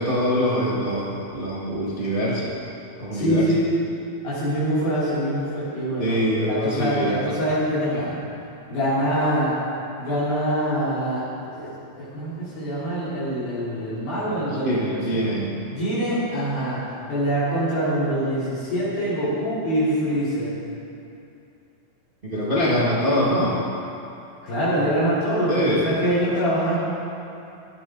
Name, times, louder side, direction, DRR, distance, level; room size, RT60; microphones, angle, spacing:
voice 1, 0.0-2.5 3.0-3.5 6.0-7.2 14.6-15.5 22.2-23.6 25.5-25.9, equal, 55° right, -7 dB, 0.5 m, -23 dB
voice 2, 3.1-3.6 4.2-6.2 6.5-8.2 8.7-9.6 10.0-11.7 12.0-15.2 15.7-20.6 24.4-25.5 25.8-26.8, equal, 75° left, -12 dB, 5.3 m, -24 dB
16.0 x 13.5 x 3.9 m, 2.7 s
omnidirectional pair, 4.3 m